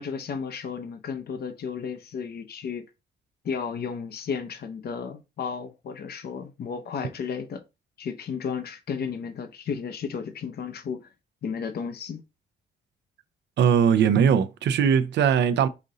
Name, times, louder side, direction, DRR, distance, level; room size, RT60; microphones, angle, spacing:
voice 1, 0.0-2.8 3.4-7.6 8.0-11.1 11.4-12.2, left 6 dB, 60° left, 0.7 m, -33 dB
voice 2, 13.6-15.7, right 7 dB, 75° right, 0.6 m, -20 dB
5.1 x 2.7 x 3.8 m
cardioid pair, 75°, 18 cm